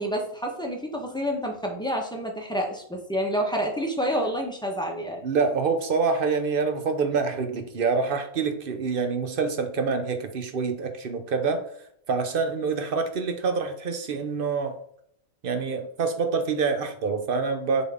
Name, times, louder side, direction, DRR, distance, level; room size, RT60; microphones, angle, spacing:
voice 1, 0.0-5.2, equal, 5° left, 0 dB, 0.9 m, -28 dB
voice 2, 5.2-11.7 12.1-14.8 15.4-17.8, right 5 dB, 45° right, 7 dB, 0.8 m, -26 dB
7.2 x 4.0 x 3.7 m, 0.68 s
omnidirectional pair, 1.5 m